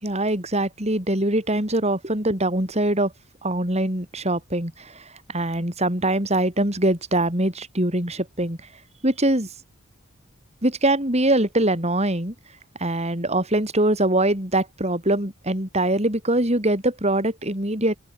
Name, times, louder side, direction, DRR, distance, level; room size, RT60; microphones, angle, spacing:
voice 1, 0.0-3.1 3.4-8.6 9.0-9.5 10.6-12.3 12.8-18.0, right 1 dB, 30° right, 5.1 m, -23 dB
open air
head